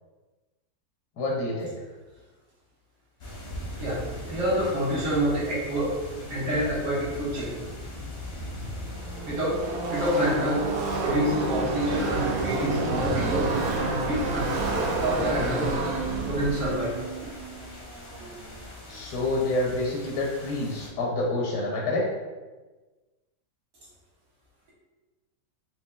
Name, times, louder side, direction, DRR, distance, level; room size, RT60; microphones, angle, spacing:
voice 1, 1.2-1.7 18.9-22.0, left 2 dB, 80° left, -3 dB, 1.2 m, -27 dB
sound 1, 3.2-20.9, left 1 dB, 50° left, 0.8 m, -39 dB
voice 2, 3.8-6.0 6.3-7.5 9.3-9.6 9.9-10.6 11.0-13.5 13.9-14.5 15.0-15.7 16.3-17.0 18.2-18.3, equal, 50° right, -8 dB, 1.5 m, -27 dB
Car passing by / Race car auto racing, 8.2-18.8, right 2 dB, 65° right, 1.0 m, -30 dB
4.3 x 2.8 x 2.3 m, 1.2 s
omnidirectional pair, 1.8 m